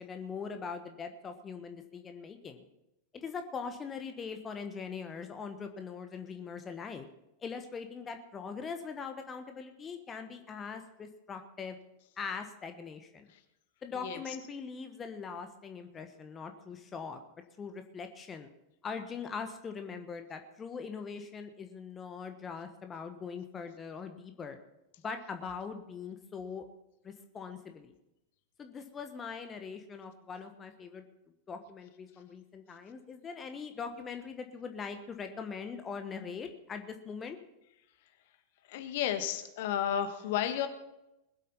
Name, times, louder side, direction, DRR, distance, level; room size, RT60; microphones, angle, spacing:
voice 1, 0.0-2.6 3.1-7.1 7.4-11.7 12.2-13.3 13.8-17.2 17.6-18.5 18.8-24.6 25.0-26.6 27.0-27.9 28.6-31.0 31.5-37.4, left 5 dB, 20° left, 6 dB, 1.3 m, -41 dB
voice 2, 13.9-14.3 38.7-40.7, left 10 dB, 50° left, 9 dB, 1.4 m, -32 dB
20.5 x 8.2 x 5.5 m, 0.89 s
figure-of-eight pair, 90°, 0 cm